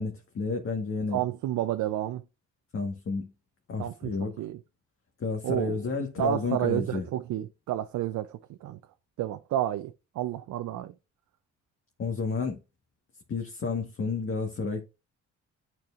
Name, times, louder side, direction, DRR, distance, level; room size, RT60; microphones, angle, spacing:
voice 1, 0.0-1.2 2.7-3.3 3.7-4.3 5.2-7.0 12.0-12.6 13.3-14.8, left 4 dB, 45° left, 1.3 m, -31 dB
voice 2, 1.1-2.2 3.8-4.6 5.4-5.9 6.2-8.8 9.2-10.9, right 12 dB, 75° right, 0.5 m, -30 dB
10.5 x 4.7 x 2.4 m
cardioid pair, 90°, 30 cm